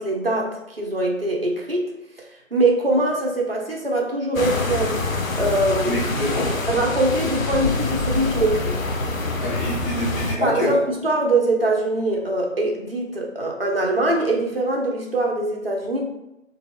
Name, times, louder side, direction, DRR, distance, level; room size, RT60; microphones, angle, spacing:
voice 1, 0.0-1.9 2.5-5.0 5.4-6.0 6.7-8.7 10.4-16.0, right 2 dB, 45° right, -1 dB, 0.7 m, -22 dB
sound 1, 4.4-10.4, left 2 dB, 90° left, 0.6 m, -25 dB
voice 2, 5.9-6.5 9.4-10.8, equal, 45° left, -8 dB, 1.0 m, -26 dB
2.5 x 2.5 x 3.1 m, 0.88 s
figure-of-eight pair, 170°, 39 cm